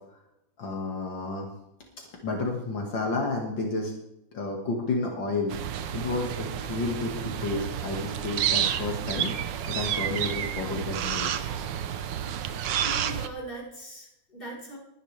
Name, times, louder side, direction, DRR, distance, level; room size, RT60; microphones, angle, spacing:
voice 1, 0.6-1.5 2.0-3.9 4.3-5.5 5.9-9.3 9.7-11.3, left 3 dB, 75° left, 0 dB, 2.6 m, -31 dB
sound 1, 5.5-13.3, right 9 dB, 75° right, 1.4 m, -30 dB
voice 2, 12.8-14.8, right 2 dB, 25° left, -5 dB, 4.2 m, -40 dB
21.0 x 10.5 x 3.3 m, 0.85 s
omnidirectional pair, 2.1 m